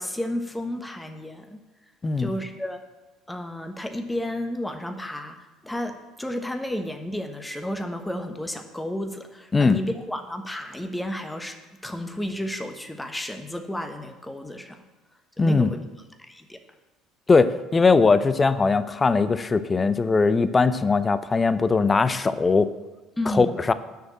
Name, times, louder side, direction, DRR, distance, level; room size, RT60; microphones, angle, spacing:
voice 1, 0.0-1.6 2.2-2.8 3.3-14.8 15.4-15.8 16.2-16.6 23.2-23.6, left 1 dB, 10° left, 6 dB, 1.2 m, -32 dB
voice 2, 15.4-15.7 17.3-22.7 23.3-23.7, left 4 dB, 25° left, 13 dB, 0.7 m, -20 dB
9.5 x 6.4 x 7.5 m, 1.1 s
hypercardioid pair, 60°, 0 cm